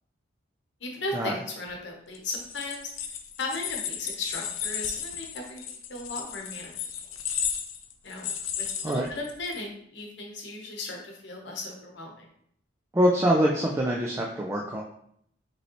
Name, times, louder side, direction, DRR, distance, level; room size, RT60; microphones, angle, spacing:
voice 1, 0.8-2.8 3.4-6.7 8.0-12.3, left 2 dB, 60° left, 0 dB, 0.9 m, -36 dB
sound 1, 2.1-9.6, left 8 dB, 90° left, 0.5 m, -34 dB
voice 2, 12.9-14.8, equal, 15° right, -2 dB, 0.3 m, -24 dB
5.1 x 3.1 x 3.0 m, 0.68 s
head